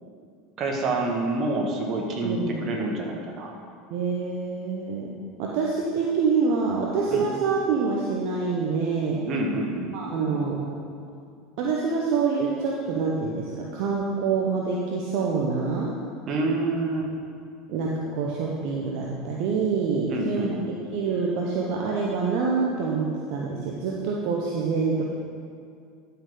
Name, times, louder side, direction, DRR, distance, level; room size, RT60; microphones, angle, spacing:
voice 1, 0.6-3.5 7.1-7.3 9.3-10.0 16.3-17.1 20.1-20.7, right 2 dB, 45° right, 1 dB, 1.6 m, -27 dB
voice 2, 2.2-2.7 3.9-9.3 9.9-10.8 11.6-16.0 17.7-20.6 20.9-25.0, right 4 dB, 60° right, -2 dB, 0.9 m, -26 dB
12.5 x 5.8 x 3.8 m, 2.3 s
hypercardioid pair, 80°, 0 cm